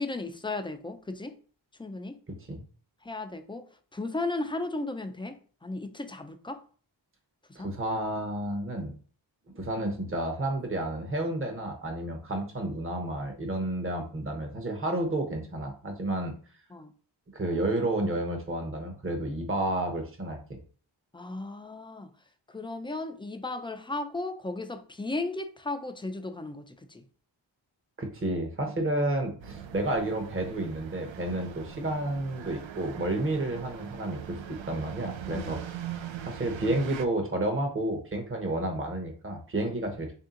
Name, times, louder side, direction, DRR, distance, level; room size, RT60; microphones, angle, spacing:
voice 1, 0.0-1.3 1.8-2.2 3.0-3.6 3.9-5.4 5.6-6.6 7.6-7.7 16.7-16.9 21.1-22.1 22.5-27.0 35.3-35.5, left 2 dB, 10° left, 0.5 m, -35 dB
voice 2, 2.3-2.6 7.5-8.9 9.5-16.3 17.3-20.6 28.0-35.6 36.2-40.1, right 1 dB, 25° right, 0.9 m, -31 dB
sound 1, 29.4-37.0, right 8 dB, 75° right, 0.5 m, -41 dB
3.5 x 2.8 x 3.7 m
wide cardioid pair, 55°, 48 cm